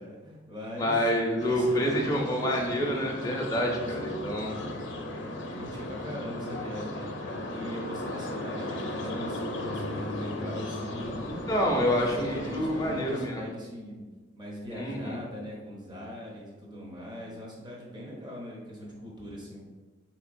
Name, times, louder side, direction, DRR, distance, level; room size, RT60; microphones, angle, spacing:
voice 1, 0.0-1.0 1.4-2.5 3.4-4.8 5.6-11.3 11.6-14.0 14.4-19.6, equal, 20° right, -3 dB, 0.7 m, -41 dB
voice 2, 0.8-4.5 11.5-13.5 14.7-15.2, equal, 20° left, 0 dB, 0.5 m, -27 dB
sound 1, 1.4-13.3, left 1 dB, 70° left, 0.5 m, -36 dB
sound 2, 11.0-12.9, right 1 dB, 70° right, 0.9 m, -47 dB
3.9 x 2.9 x 2.5 m, 1.3 s
head